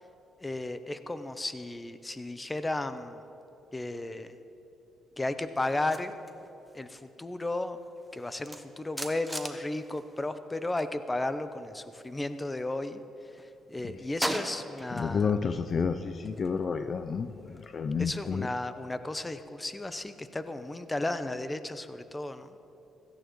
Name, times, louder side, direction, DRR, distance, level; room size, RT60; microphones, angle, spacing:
voice 1, 0.4-3.2 3.7-4.4 5.2-6.1 6.7-7.8 8.1-13.0 13.7-15.3 18.0-22.5, left 2 dB, 15° left, 10 dB, 0.7 m, -34 dB
sound 1, 5.6-10.9 11.2-12.8 13.2-15.3 15.6-18.4, right 1 dB, ahead, 1.1 m, -42 dB
voice 2, 14.9-18.5, left 5 dB, 45° left, 9 dB, 0.5 m, -30 dB
16.5 x 14.5 x 3.1 m, 2.8 s
cardioid pair, 90°, 0 cm